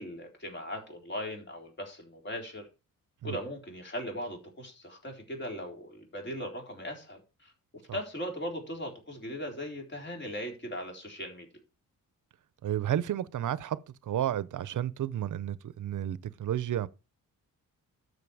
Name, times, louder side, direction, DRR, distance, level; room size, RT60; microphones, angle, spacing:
voice 1, 0.0-2.7 3.2-7.5 7.9-11.5, equal, 30° left, 4.0 m, -39 dB
voice 2, 12.6-13.8 14.1-16.9, right 11 dB, 65° right, 0.8 m, -31 dB
12.5 x 6.5 x 4.9 m
wide cardioid pair, 130°, 34 cm